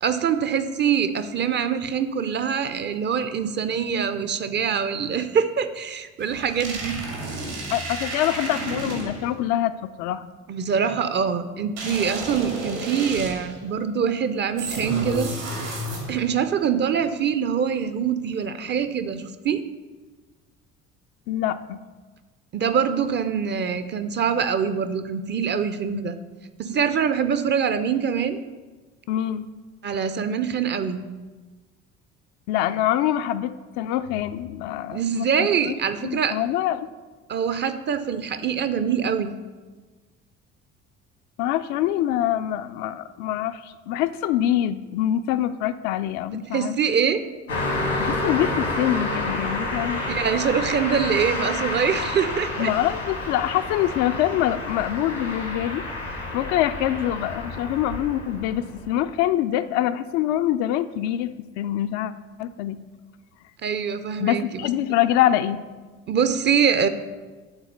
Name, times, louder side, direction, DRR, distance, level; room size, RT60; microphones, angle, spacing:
voice 1, 0.0-7.0 10.5-15.3 16.1-19.6 22.5-26.2 26.6-28.4 29.8-31.1 34.9-36.4 37.3-39.3 46.5-47.2 50.1-52.7 63.6-64.6 66.1-66.9, right 7 dB, 30° right, 11 dB, 0.6 m, -24 dB
sound 1, 6.2-9.3 11.8-13.6 14.6-16.3, right 1 dB, 70° right, 2.3 m, -31 dB
voice 2, 7.7-10.2 21.3-21.8 25.9-26.0 29.1-29.4 32.5-33.5 33.8-35.7 36.0-36.9 41.4-46.8 48.0-50.0 52.6-55.8 56.1-62.1 62.4-62.8 64.2-65.6, left 12 dB, 50° left, 11 dB, 0.4 m, -25 dB
Car passing by, 47.5-58.9, left 2 dB, 85° left, 1.5 m, -29 dB
8.9 x 4.1 x 6.6 m, 1.3 s
figure-of-eight pair, 55°, 36 cm